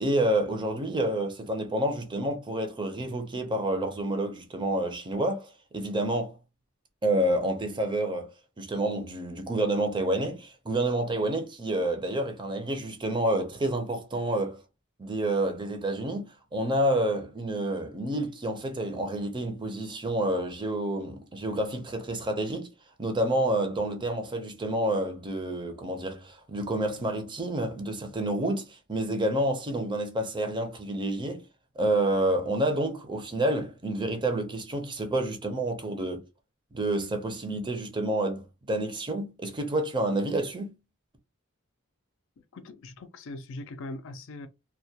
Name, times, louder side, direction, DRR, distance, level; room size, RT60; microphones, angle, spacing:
voice 1, 0.0-6.4 7.0-14.6 15.0-16.2 16.5-22.7 23.0-31.4 31.8-36.2 36.7-40.7, right 1 dB, 25° right, 0.5 m, -29 dB
voice 2, 42.4-44.5, left 2 dB, 65° left, 0.4 m, -41 dB
2.2 x 2.2 x 2.7 m
head